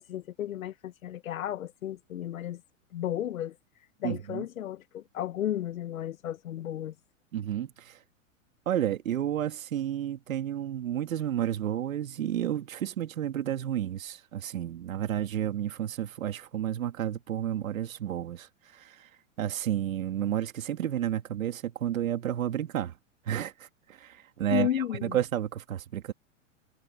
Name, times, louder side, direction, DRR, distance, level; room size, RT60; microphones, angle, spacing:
voice 1, 0.0-2.6 2.9-3.6 4.0-6.9 24.5-25.2, left 11 dB, 80° left, 1.2 m, -33 dB
voice 2, 4.0-4.5 7.3-8.0 8.7-18.5 18.7-18.9 19.4-22.9 23.3-26.1, right 11 dB, 80° right, 2.5 m, -31 dB
hypercardioid pair, 115°, 40 cm